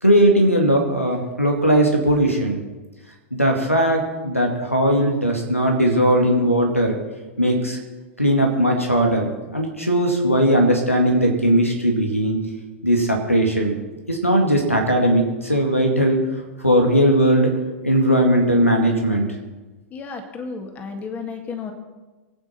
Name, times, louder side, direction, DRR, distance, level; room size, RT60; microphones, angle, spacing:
voice 1, 0.0-2.6 3.3-7.0 7.4-7.8 8.2-12.4 12.8-13.8 14.1-16.2 16.6-17.5 17.8-19.3, right 1 dB, 90° left, 1 dB, 2.1 m, -18 dB
voice 2, 19.9-21.7, left 5 dB, 20° left, 5 dB, 1.9 m, -32 dB
23.0 x 9.1 x 4.4 m, 1.2 s
figure-of-eight pair, 95°, 7 cm